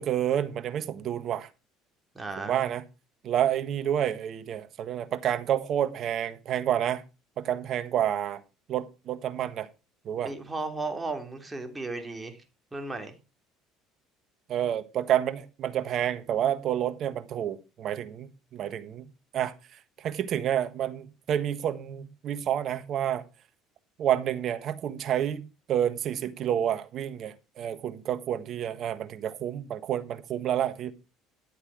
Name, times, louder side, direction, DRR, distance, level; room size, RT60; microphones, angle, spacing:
voice 1, 0.0-1.5 2.4-2.8 3.2-7.0 7.4-8.4 8.7-9.7 10.0-10.3 14.5-19.1 19.3-19.5 20.0-23.2 24.0-30.9, right 10 dB, 55° right, 1.4 m, -29 dB
voice 2, 2.1-2.7 10.2-12.4 12.7-13.1, right 3 dB, 15° right, 3.1 m, -35 dB
11.5 x 8.3 x 4.8 m
hypercardioid pair, 70°, 0 cm